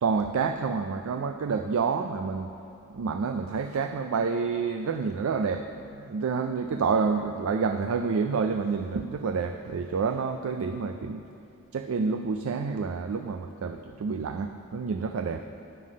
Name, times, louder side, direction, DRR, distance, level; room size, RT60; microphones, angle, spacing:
voice 1, 0.0-2.5 2.9-5.7 6.0-11.2 11.7-15.5, right 5 dB, 65° right, 7 dB, 0.4 m, -28 dB
9.4 x 5.7 x 6.2 m, 2.7 s
head